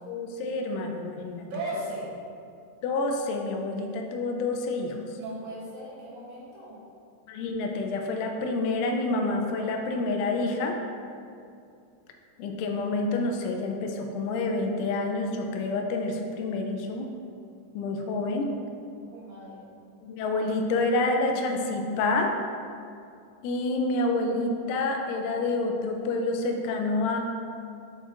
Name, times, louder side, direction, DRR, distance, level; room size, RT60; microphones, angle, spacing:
voice 1, 0.1-1.4 2.8-5.0 7.3-10.8 12.4-17.1 17.7-18.6 20.0-22.3 23.4-27.2, left 2 dB, 85° left, 3 dB, 3.0 m, -28 dB
voice 2, 1.4-2.1 5.2-6.8 19.1-19.6, right 1 dB, 70° right, -8 dB, 3.5 m, -37 dB
8.7 x 5.2 x 2.5 m, 2.5 s
omnidirectional pair, 5.5 m